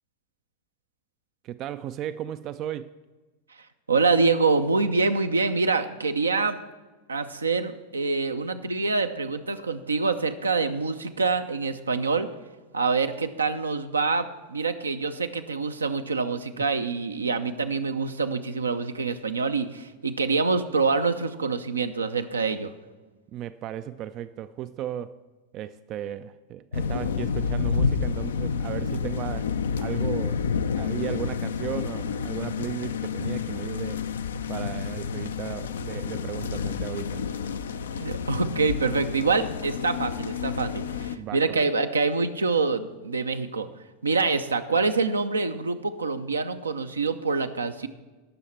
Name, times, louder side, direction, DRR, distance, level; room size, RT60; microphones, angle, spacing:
voice 1, 1.4-2.9 16.6-16.7 23.3-25.2 25.5-29.5 29.8-30.4 30.7-34.0 34.5-37.2 41.2-41.6, right 11 dB, 35° right, 13 dB, 0.3 m, -35 dB
voice 2, 3.9-6.6 7.1-12.3 12.7-22.7 37.9-43.7 44.0-47.9, right 4 dB, 75° right, 8 dB, 0.6 m, -26 dB
sound 1, 26.7-41.2, left 6 dB, 70° left, 0.4 m, -29 dB
18.5 x 6.4 x 4.4 m, 1.2 s
figure-of-eight pair, 90°, 0 cm